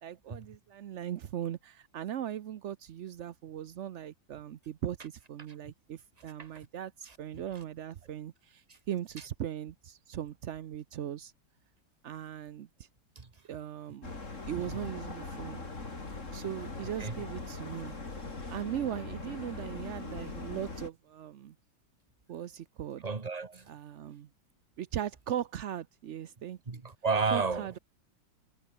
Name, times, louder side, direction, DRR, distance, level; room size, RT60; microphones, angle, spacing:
voice 1, 0.0-11.3 12.0-12.7 13.5-14.1 14.5-15.7 16.3-18.0 18.5-21.5 22.3-23.0 23.7-24.3 24.8-26.6 27.3-27.8, right 10 dB, 75° right, 0.6 m, -39 dB
sound 1, 14.0-20.9, left 3 dB, 40° left, 3.8 m, -41 dB
voice 2, 23.0-23.7 26.7-27.8, right 4 dB, 20° right, 1.4 m, -32 dB
omnidirectional pair, 2.1 m